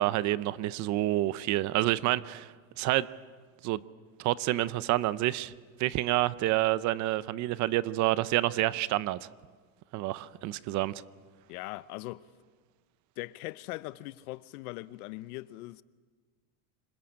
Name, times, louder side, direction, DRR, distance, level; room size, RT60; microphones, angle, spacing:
voice 1, 0.0-3.1 3.6-3.8 4.2-5.5 5.8-9.3 9.9-10.9, right 16 dB, 40° right, 0.7 m, -28 dB
voice 2, 11.5-12.3 13.2-15.8, left 19 dB, 80° left, 0.9 m, -40 dB
26.5 x 20.5 x 8.7 m
supercardioid pair, 145°, 44 cm